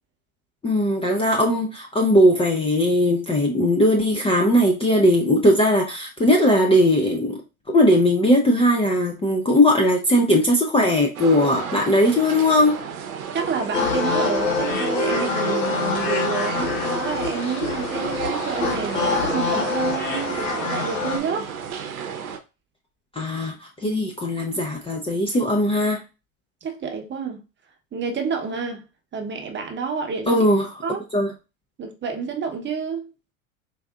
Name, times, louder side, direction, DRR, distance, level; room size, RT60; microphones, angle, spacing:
voice 1, 0.6-7.4 7.7-12.8 23.2-26.0 30.3-30.7 31.1-31.3, left 1 dB, 15° left, 0.5 m, -19 dB
sound 1, 11.1-22.4, right 7 dB, 85° right, 0.7 m, -32 dB
voice 2, 13.3-21.5 23.8-24.0 26.6-27.4 27.9-28.8 29.1-30.4 30.8-31.0 31.8-33.1, right 6 dB, 25° right, 0.9 m, -29 dB
sound 2, 13.7-21.2, left 3 dB, 65° left, 1.2 m, -25 dB
4.7 x 2.6 x 2.3 m
hypercardioid pair, 85°, 42 cm